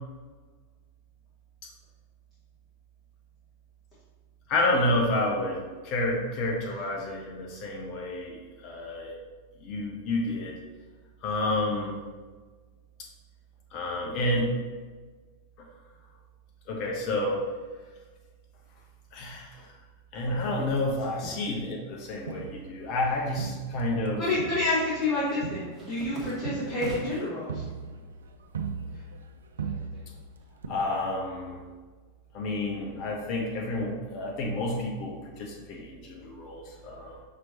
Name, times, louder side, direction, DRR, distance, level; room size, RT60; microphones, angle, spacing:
voice 1, 4.5-9.1 9.6-10.6 11.2-11.9 13.7-14.5 16.7-17.4 19.1-19.7 20.1-24.2 30.7-31.6 32.3-37.2, left 1 dB, 40° left, 0 dB, 0.8 m, -30 dB
Crowd, 22.3-24.1 24.4-29.3 29.6-30.2 30.6-30.7, right 5 dB, 70° right, 0.3 m, -38 dB
voice 2, 24.2-27.6, left 2 dB, 25° left, -11 dB, 1.5 m, -28 dB
sound 1, 25.4-27.4 27.8-28.5 28.8-30.4, right 2 dB, 15° right, 1.3 m, -43 dB
5.9 x 2.9 x 2.7 m, 1.4 s
figure-of-eight pair, 90°, 0 cm